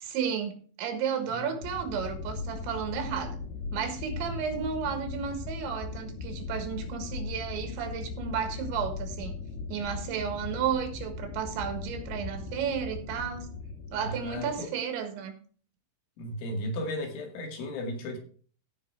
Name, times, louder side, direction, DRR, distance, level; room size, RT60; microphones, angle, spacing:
voice 1, 0.0-3.4 3.7-9.3 9.7-13.5 13.9-15.3, right 7 dB, 75° right, 3.9 m, -33 dB
sound 1, 1.6-14.6, left 4 dB, 65° left, 2.8 m, -38 dB
voice 2, 14.0-14.7 16.2-18.2, left 1 dB, 80° left, 4.7 m, -35 dB
16.0 x 5.7 x 4.7 m
omnidirectional pair, 5.4 m